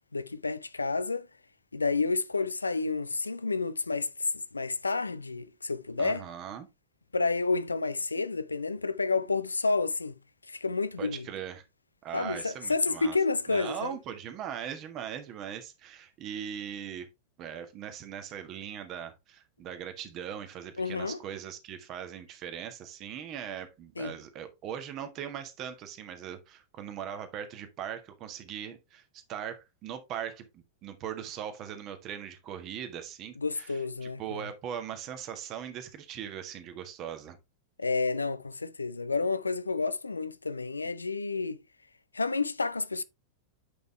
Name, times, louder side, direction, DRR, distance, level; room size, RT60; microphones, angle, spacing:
voice 1, 0.1-1.3 1.7-6.3 7.1-10.2 10.5-11.3 12.1-14.0 20.8-21.2 24.0-24.2 33.4-34.5 37.8-41.6 42.1-43.0, left 3 dB, 80° left, 0.4 m, -30 dB
voice 2, 6.0-6.7 11.0-11.6 12.0-13.2 13.5-17.1 17.4-29.0 29.3-37.4, right 9 dB, 35° right, 1.5 m, -40 dB
8.5 x 5.4 x 3.2 m
figure-of-eight pair, 90°, 0 cm